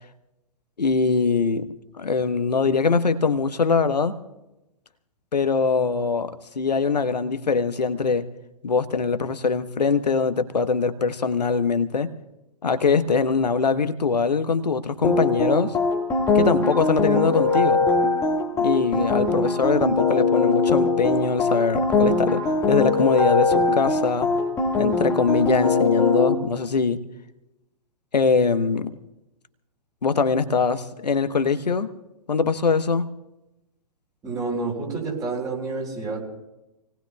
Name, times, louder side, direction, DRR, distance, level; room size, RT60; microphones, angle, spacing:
voice 1, 0.8-1.7 2.0-4.2 5.3-8.3 8.6-12.1 12.6-15.7 16.3-17.9 18.5-24.3 24.8-27.0 28.1-28.9 30.0-31.9 32.3-33.1, left 5 dB, 75° left, 10 dB, 1.1 m, -22 dB
sound 1, 15.0-26.3, left 3 dB, 15° left, 1.7 m, -21 dB
voice 2, 34.2-36.2, right 3 dB, 15° right, -2 dB, 3.7 m, -29 dB
28.0 x 18.5 x 2.3 m, 0.96 s
figure-of-eight pair, 120°, 21 cm